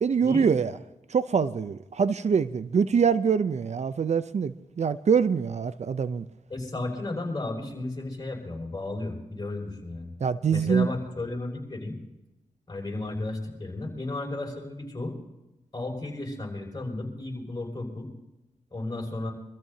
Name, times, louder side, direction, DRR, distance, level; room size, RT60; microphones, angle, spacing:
voice 1, 0.0-0.8 1.1-6.3 10.2-10.9, right 6 dB, 55° right, 13 dB, 0.6 m, -24 dB
voice 2, 6.5-10.1 10.5-12.0 12.7-15.2 15.7-18.1 18.7-19.3, left 2 dB, 30° left, -1 dB, 6.3 m, -33 dB
26.5 x 14.0 x 2.8 m, 0.99 s
cardioid pair, 60°, 14 cm